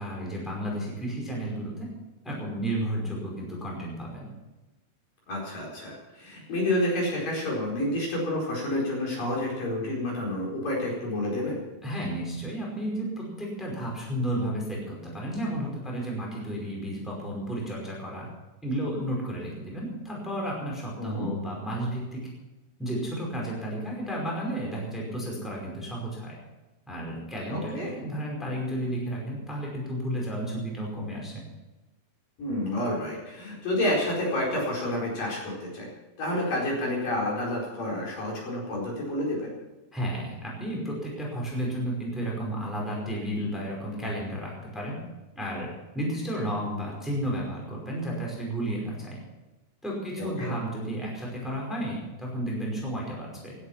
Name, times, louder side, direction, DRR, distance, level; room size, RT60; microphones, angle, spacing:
voice 1, 0.0-1.9 2.2-4.3 11.8-18.3 18.6-22.2 22.8-26.4 26.9-31.4 39.9-45.0 45.3-49.2 49.8-53.5, right 1 dB, ahead, -2 dB, 4.7 m, -32 dB
voice 2, 5.3-11.6 21.0-21.3 27.5-27.9 32.4-35.9 36.2-39.5 50.2-50.5, left 1 dB, 55° left, -3 dB, 6.1 m, -29 dB
18.5 x 11.0 x 5.9 m, 1.1 s
omnidirectional pair, 4.8 m